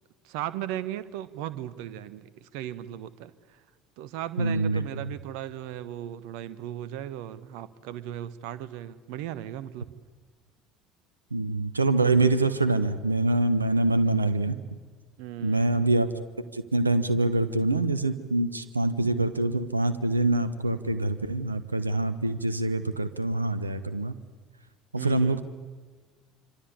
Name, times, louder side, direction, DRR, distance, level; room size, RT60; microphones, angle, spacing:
voice 1, 0.2-3.6 4.0-9.9 15.2-15.8 25.0-25.4, right 12 dB, 60° right, 15 dB, 1.4 m, -37 dB
voice 2, 4.4-4.9 11.3-14.6 15.4-16.1 16.5-24.1 24.9-25.4, right 2 dB, 85° right, 13 dB, 1.2 m, -25 dB
26.0 x 26.0 x 8.4 m, 1.5 s
figure-of-eight pair, 60°, 0 cm